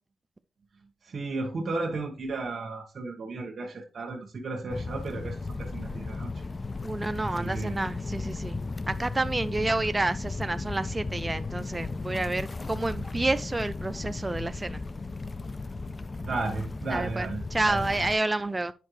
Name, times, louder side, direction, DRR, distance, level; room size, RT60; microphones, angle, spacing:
voice 1, 1.0-6.3 7.2-7.8 16.2-17.8, right 3 dB, 60° right, 1.4 m, -34 dB
sound 1, 4.7-18.2, left 3 dB, 35° left, 0.5 m, -35 dB
voice 2, 6.8-8.6 8.9-14.8 16.9-18.7, right 2 dB, 25° right, 0.4 m, -29 dB
8.5 x 5.6 x 3.1 m
cardioid pair, 60°, 0 cm